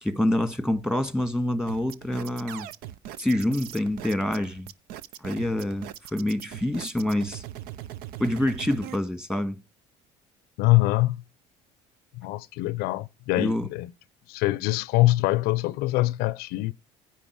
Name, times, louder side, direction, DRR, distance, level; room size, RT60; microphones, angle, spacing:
voice 1, 0.0-2.7 3.2-4.7 5.2-7.4 8.2-9.6 13.4-13.7, left 1 dB, 5° right, 1.7 m, -26 dB
sound 1, 1.7-9.0, right 12 dB, 75° right, 0.6 m, -40 dB
voice 2, 10.6-11.2 12.1-13.9 14.3-16.7, left 19 dB, 75° left, 0.5 m, -24 dB
10.0 x 7.8 x 4.7 m
supercardioid pair, 80°, 16 cm